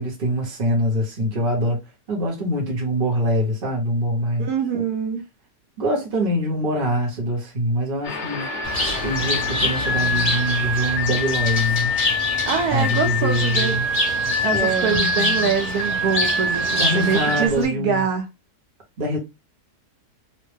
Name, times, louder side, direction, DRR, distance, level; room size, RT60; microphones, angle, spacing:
voice 1, 0.0-1.8 2.1-4.5 5.8-8.5 9.0-11.9 12.7-13.9 14.5-15.5 16.7-18.0 19.0-19.2, equal, 40° right, 1.0 m, -24 dB
voice 2, 4.4-5.2 12.5-13.8 14.4-18.2, right 6 dB, 75° right, 1.2 m, -24 dB
sound 1, 8.0-17.5, left 1 dB, 45° left, 0.6 m, -25 dB
Bird, 8.6-17.6, left 1 dB, 25° left, 1.0 m, -27 dB
3.1 x 2.1 x 3.2 m
omnidirectional pair, 1.7 m